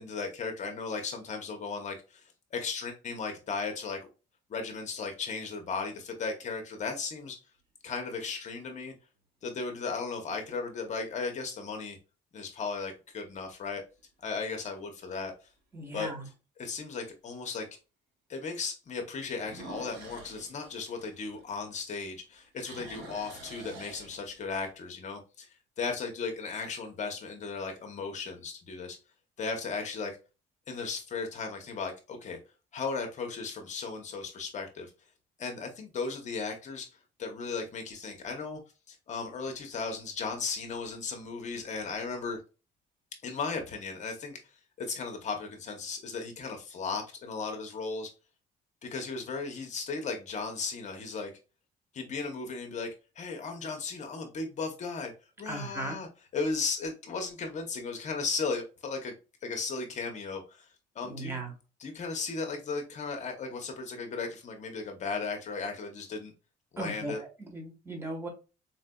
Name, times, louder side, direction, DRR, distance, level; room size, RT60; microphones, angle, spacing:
voice 1, 0.0-2.2 2.5-4.0 4.5-7.4 7.8-8.9 9.4-12.0 12.3-13.8 14.2-15.3 15.9-16.1 16.6-17.6 18.3-25.5 25.8-29.0 29.4-30.2 30.7-32.4 32.7-34.9 35.4-36.9 37.2-38.6 38.9-42.4 43.2-44.4 44.8-48.1 48.8-51.3 51.9-52.9 53.2-55.1 55.4-56.1 56.3-59.1 59.4-60.7 61.0-61.4 61.8-66.3 66.7-67.2, left 4 dB, 45° left, 3 dB, 0.8 m, -36 dB
sound 1, 6.0-6.4 7.1-7.2 12.4-12.9 13.3-13.4 14.0-14.1 14.3-14.4 16.0-16.1 19.4-21.9 22.2-24.6, right 2 dB, 85° right, 1.5 m, -48 dB
voice 2, 15.7-16.3 55.5-56.0 61.1-61.5 66.8-68.3, right 2 dB, 15° right, 1 dB, 1.2 m, -37 dB
4.2 x 2.5 x 2.2 m, 0.31 s
cardioid pair, 110°, 17 cm